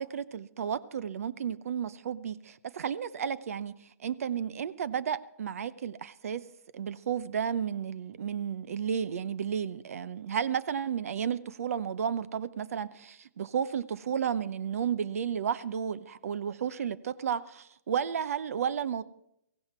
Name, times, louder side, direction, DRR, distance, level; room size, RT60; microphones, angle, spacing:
voice 1, 0.0-6.4 6.7-19.0, right 8 dB, 70° right, 17 dB, 0.7 m, -32 dB
17.0 x 16.0 x 4.4 m, 0.78 s
hypercardioid pair, 150°, 8 cm